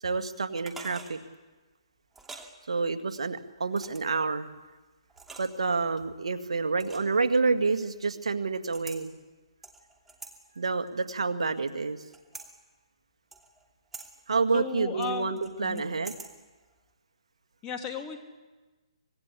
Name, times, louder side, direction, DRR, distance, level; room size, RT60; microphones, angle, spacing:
voice 1, 0.0-1.2 2.7-4.5 5.4-9.1 10.6-12.0 14.3-16.1, right 4 dB, 80° right, 8 dB, 2.1 m, -28 dB
sound 1, 0.6-1.2 2.1-2.5 3.7-4.2 5.1-5.7 6.8-7.2 8.7-9.0 9.6-10.3 10.9-11.7 12.1-12.5 13.3-13.6 13.9-14.1 15.0-16.3 16.6-16.7, right 3 dB, 5° right, 2.7 m, -45 dB
voice 2, 14.5-15.8 17.6-18.2, left 7 dB, 20° left, 4 dB, 3.1 m, -35 dB
25.0 x 21.0 x 8.5 m, 1.2 s
hypercardioid pair, 145°, 3 cm